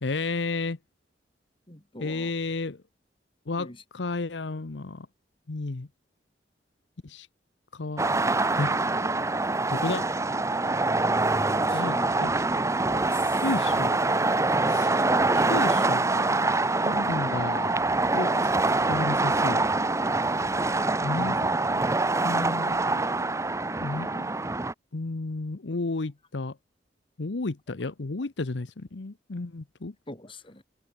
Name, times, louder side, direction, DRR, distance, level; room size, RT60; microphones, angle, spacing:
voice 1, 0.0-0.8 2.0-2.8 3.5-5.1 5.5-5.9 7.0-7.3 7.7-8.1 8.6-8.7 9.7-10.1 11.7-12.3 13.4-14.0 14.7-15.1 15.3-16.3 16.7-17.8 18.1-18.5 18.8-19.6 21.0-21.4 22.2-22.8 23.8-24.3 24.9-26.6 27.2-29.9, left 3 dB, 75° left, 0.9 m, -32 dB
voice 2, 1.7-2.3 3.6-3.8 11.5-12.2 12.9-13.4 14.5-14.9 21.1-21.4 30.1-30.6, left 1 dB, 30° left, 5.0 m, -42 dB
sound 1, 8.0-24.7, right 2 dB, 15° right, 0.9 m, -25 dB
head